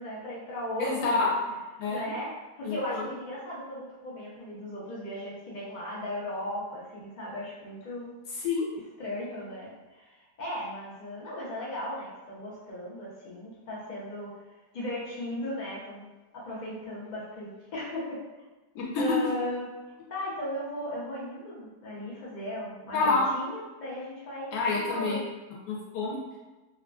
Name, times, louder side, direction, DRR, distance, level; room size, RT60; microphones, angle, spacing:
voice 1, 0.0-1.3 1.9-2.3 2.6-8.2 9.0-14.3 14.7-16.1 16.3-18.2 19.0-19.7 20.1-24.5 24.9-25.2, left 1 dB, 55° left, -6 dB, 0.5 m, -36 dB
voice 2, 0.8-1.3 1.8-2.1 2.6-3.0 8.4-8.7 18.7-19.0 22.9-23.3 24.5-25.2 25.7-26.2, left 4 dB, 80° left, -3 dB, 1.2 m, -28 dB
3.0 x 2.4 x 2.3 m, 1.2 s
omnidirectional pair, 1.8 m